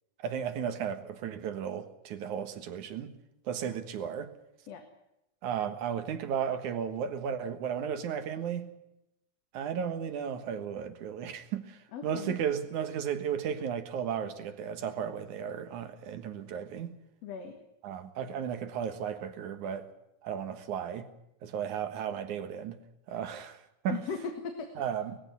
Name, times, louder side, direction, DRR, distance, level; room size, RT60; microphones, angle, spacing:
voice 1, 0.2-3.1 3.5-4.3 5.4-8.7 9.5-16.9 17.8-19.9 20.2-21.1 21.4-22.8 23.1-24.0 24.8-25.2, right 8 dB, 80° right, 2.9 m, -34 dB
voice 2, 11.9-12.4 17.2-17.6 23.1-23.2 23.9-24.8, left 6 dB, 60° left, 2.8 m, -38 dB
20.5 x 14.5 x 9.3 m
omnidirectional pair, 3.4 m